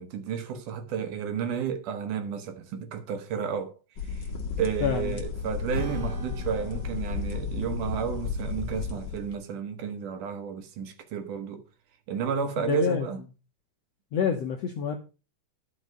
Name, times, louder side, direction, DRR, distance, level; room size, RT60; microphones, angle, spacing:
voice 1, 0.0-3.8 4.0-4.3 4.6-11.6 12.1-13.2, right 7 dB, 70° right, 2.4 m, -32 dB
sound 1, 4.0-9.3, left 5 dB, 45° left, 1.5 m, -33 dB
voice 2, 4.8-5.2 12.6-13.1 14.1-15.0, left 7 dB, 70° left, 1.6 m, -27 dB
Acoustic guitar / Strum, 5.7-10.5, right 4 dB, 40° right, 3.9 m, -46 dB
11.5 x 5.6 x 5.1 m
omnidirectional pair, 4.2 m